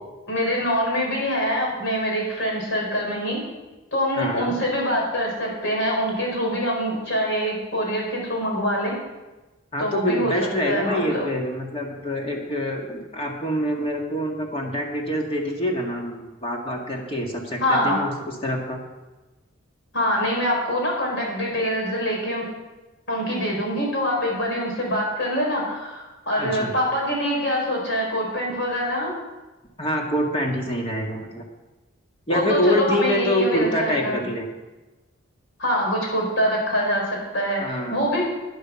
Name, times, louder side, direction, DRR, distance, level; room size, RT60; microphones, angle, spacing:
voice 1, 0.3-3.4 3.9-8.9 9.8-11.2 17.6-18.0 19.9-22.5 23.1-29.1 32.3-34.2 35.6-38.2, equal, 60° left, -2 dB, 5.0 m, -24 dB
voice 2, 4.2-4.5 9.7-18.1 18.4-18.8 26.4-26.7 29.8-31.4 32.3-34.5 37.6-38.0, equal, 30° left, 0 dB, 1.9 m, -25 dB
11.5 x 10.5 x 5.8 m, 1.1 s
head